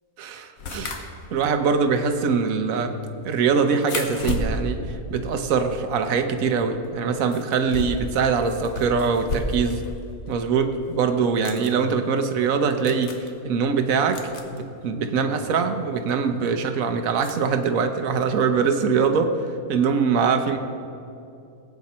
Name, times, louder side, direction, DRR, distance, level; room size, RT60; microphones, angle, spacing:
voice 1, 0.2-1.0 1.3-2.9 3.2-4.8 5.1-9.8 10.3-19.4 19.7-20.6, right 5 dB, 70° right, 7 dB, 1.3 m, -23 dB
sound 1, 0.6-6.1 6.4-9.9 10.3-10.4 11.2-11.7 12.4-12.5 12.7-13.3 14.1-14.6 16.0-16.1 17.2-17.3, left 2 dB, 75° left, 1.5 m, -33 dB
19.5 x 8.5 x 4.3 m, 2.6 s
omnidirectional pair, 1.5 m